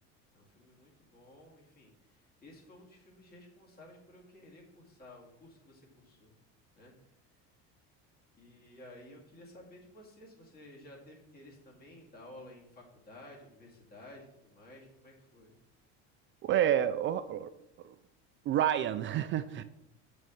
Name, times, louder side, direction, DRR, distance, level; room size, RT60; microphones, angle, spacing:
voice 1, 0.3-6.3 6.8-6.9 8.3-15.5, left 1 dB, 25° left, -2 dB, 2.3 m, -54 dB
voice 2, 16.4-17.5 17.8-17.9 18.5-19.6, right 10 dB, 35° right, 11 dB, 0.4 m, -29 dB
7.6 x 5.2 x 6.3 m, 0.85 s
cardioid pair, 135°, 34 cm